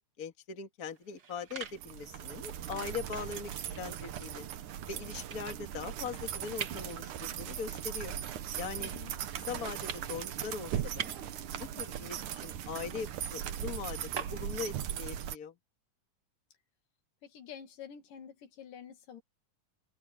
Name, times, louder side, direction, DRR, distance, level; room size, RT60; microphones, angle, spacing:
voice 1, 0.0-4.5 4.9-8.2 8.6-8.9 9.5-11.1 11.8-15.5, left 6 dB, 30° left, 2.0 m, -41 dB
sound 1, 0.9-14.8, right 7 dB, 50° right, 1.2 m, -48 dB
sound 2, 1.7-15.4, right 10 dB, 70° right, 2.7 m, -39 dB
voice 2, 8.8-9.1 17.2-19.2, left 8 dB, 80° left, 3.7 m, -48 dB
open air
omnidirectional pair, 3.8 m